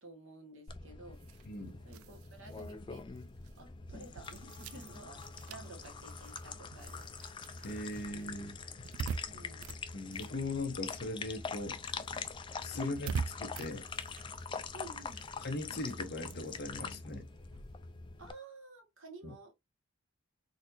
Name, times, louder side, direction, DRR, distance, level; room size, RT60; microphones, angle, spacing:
voice 1, 0.0-1.2 1.8-3.1 3.6-7.1 9.3-9.7 12.7-13.0 14.7-15.2 18.2-19.5, right 2 dB, 65° right, 1.5 m, -52 dB
sound 1, 0.7-18.3, left 5 dB, 20° left, 0.3 m, -44 dB
sound 2, 1.1-11.0 11.3-18.3, right 5 dB, 90° right, 0.4 m, -46 dB
voice 2, 1.5-1.8 7.6-8.9 9.9-11.8 12.6-13.1 13.4-13.9 15.4-17.3 19.2-19.3, left 2 dB, 50° left, 0.8 m, -39 dB
4.0 x 2.8 x 2.7 m
head